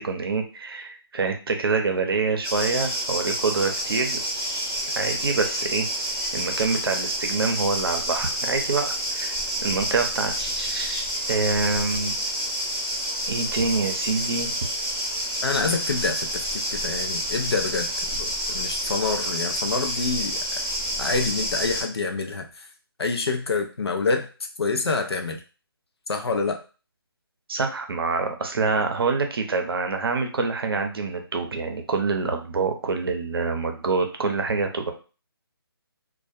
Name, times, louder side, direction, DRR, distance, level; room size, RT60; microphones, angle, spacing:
voice 1, 0.0-4.2 5.0-5.9 6.3-9.3 9.6-10.3 10.6-11.0 11.3-12.1 13.3-14.5 15.7-15.8 27.5-34.9, right 4 dB, 65° right, 4 dB, 0.6 m, -26 dB
sound 1, 2.4-21.8, equal, 5° right, 0.7 m, -29 dB
voice 2, 15.4-20.4 21.0-22.6 23.0-24.3 24.6-25.4 26.1-26.6, left 4 dB, 85° left, 4 dB, 0.5 m, -27 dB
2.2 x 2.1 x 2.6 m, 0.34 s
figure-of-eight pair, 150°, 13 cm